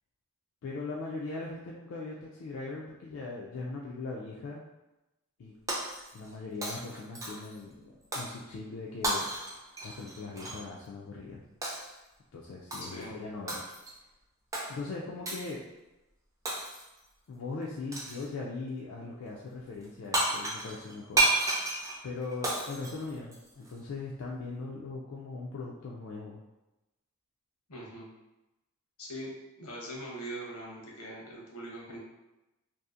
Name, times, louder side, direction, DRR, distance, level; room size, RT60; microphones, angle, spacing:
voice 1, 0.6-4.6 5.4-5.5 6.1-9.3 9.8-11.4 12.3-13.6 14.7-15.6 17.3-21.3 22.0-26.4, left 3 dB, 60° left, -3 dB, 0.3 m, -40 dB
Shatter, 5.7-6.3 6.6-7.6 8.1-8.4 9.0-10.6 11.6-12.0 12.7-13.0 13.5-14.0 14.5-14.7 15.3-15.5 16.5-17.0 17.9-18.3 19.8-19.9 20.1-23.7, right 2 dB, 15° right, 0.4 m, -32 dB
voice 2, 12.8-13.2 27.7-28.1 29.0-29.3 29.6-32.0, right 1 dB, 80° left, -3 dB, 0.8 m, -41 dB
2.6 x 2.4 x 2.4 m, 1.0 s
head